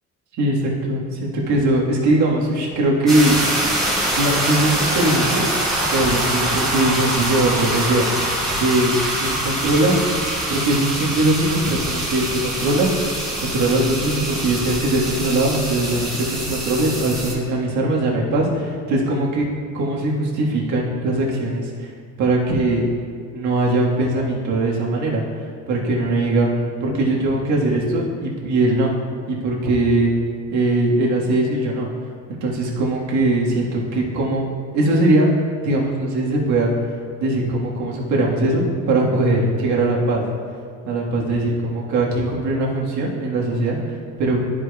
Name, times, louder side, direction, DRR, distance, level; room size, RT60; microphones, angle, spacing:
voice 1, 0.4-3.4 4.1-5.4 5.9-8.1 8.6-10.0 10.5-12.9 13.4-19.4 19.7-21.9 22.2-22.9 23.3-25.2 25.7-26.5 26.8-28.9 29.3-30.1 30.5-31.9 32.4-34.5 34.7-35.3 35.6-36.7 37.2-40.2 40.8-43.8 44.2-44.5, right 2 dB, 65° right, -3 dB, 1.6 m, -20 dB
sound 1, 3.1-17.3, right 1 dB, ahead, 1.8 m, -24 dB
13.0 x 5.0 x 2.3 m, 2.1 s
cardioid pair, 155°, 31 cm